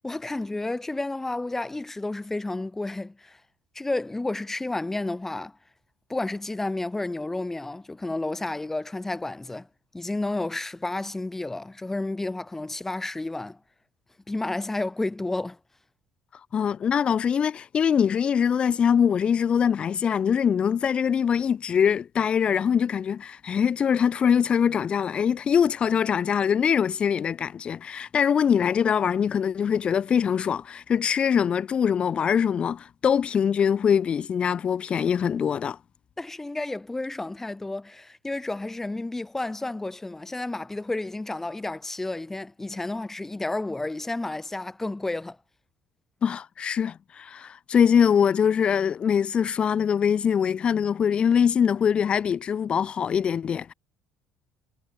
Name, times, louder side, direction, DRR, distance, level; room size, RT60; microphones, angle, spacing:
voice 1, 0.0-3.4 3.8-5.5 6.1-9.7 9.9-13.6 14.3-15.6 36.2-45.4, left 2 dB, 15° left, 5.2 m, -31 dB
voice 2, 16.3-35.8 46.2-53.7, left 7 dB, 40° left, 2.4 m, -23 dB
figure-of-eight pair, 60°, 3 cm